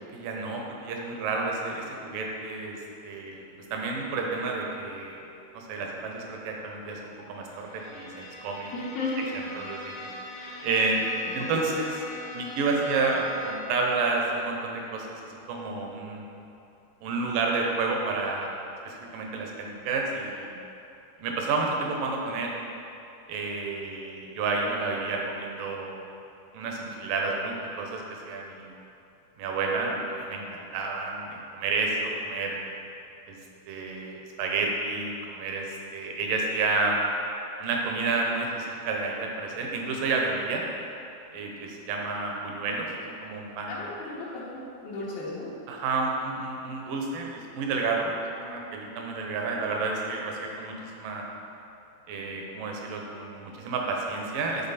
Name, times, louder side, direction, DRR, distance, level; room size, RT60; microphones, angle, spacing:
voice 1, 0.2-2.8 3.0-3.4 3.7-5.2 5.5-8.7 9.6-10.1 10.6-11.0 11.3-11.9 12.3-15.2 15.5-16.3 17.0-18.5 18.9-20.6 21.2-22.6 23.3-25.9 26.5-28.7 29.4-32.6 33.3-33.4 33.7-35.7 35.9-37.0 37.6-40.7 41.3-42.9 43.2-43.8 45.7-51.3 52.1-54.7, right 3 dB, 75° right, 0 dB, 2.4 m, -30 dB
Bowed string instrument, 7.4-13.9, left 1 dB, 65° left, 1.8 m, -41 dB
voice 2, 8.7-9.2 11.4-11.5 43.7-45.5, left 3 dB, 80° left, -8 dB, 2.9 m, -34 dB
11.0 x 3.9 x 4.1 m, 2.8 s
omnidirectional pair, 4.3 m